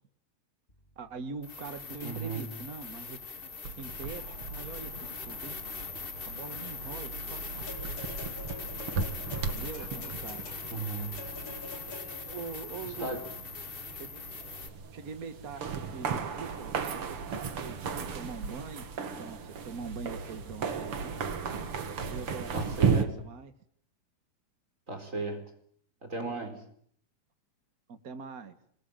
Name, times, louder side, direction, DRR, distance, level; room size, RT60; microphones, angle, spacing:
sound 1, 0.7-0.8 1.4-14.7, left 5 dB, 20° left, 2.2 m, -41 dB
voice 1, 1.0-3.5 3.8-4.9 5.2-5.6 6.2-7.4 7.7-7.8 9.4-10.5 12.2-13.2 13.9-14.4 14.9-18.9 19.2-21.3 22.1-23.5 26.2-26.5 27.9-28.6, right 5 dB, 70° right, 9 dB, 0.8 m, -43 dB
voice 2, 2.0-2.5 10.7-11.1 13.0-13.2 22.5-23.2 24.9-25.5 26.0-26.6, right 3 dB, 20° right, 5 dB, 4.4 m, -35 dB
sound 2, 3.6-23.0, right 5 dB, 45° right, 2.3 m, -36 dB
sound 3, 7.7-12.4 13.4-13.5, left 2 dB, 45° left, 5.4 m, -46 dB
26.5 x 22.0 x 8.9 m, 0.64 s
omnidirectional pair, 4.2 m